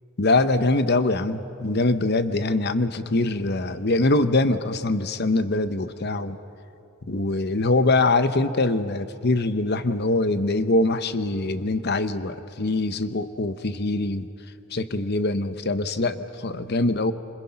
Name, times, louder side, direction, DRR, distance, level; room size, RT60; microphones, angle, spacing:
voice 1, 0.2-6.4 7.1-14.3 14.7-17.1, left 2 dB, 50° left, 11 dB, 0.9 m, -23 dB
27.0 x 25.5 x 5.8 m, 2.8 s
head